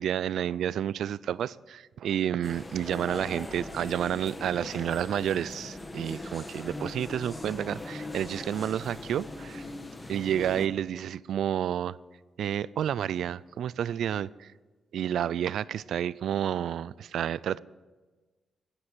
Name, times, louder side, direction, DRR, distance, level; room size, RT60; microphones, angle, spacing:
voice 1, 0.0-9.6 10.1-12.0 12.4-14.5 14.9-17.6, right 10 dB, 80° right, 21 dB, 0.3 m, -30 dB
sound 1, 2.4-10.7, left 2 dB, 20° left, 1.2 m, -40 dB
15.5 x 9.8 x 6.2 m, 1.3 s
cardioid pair, 95°, 0 cm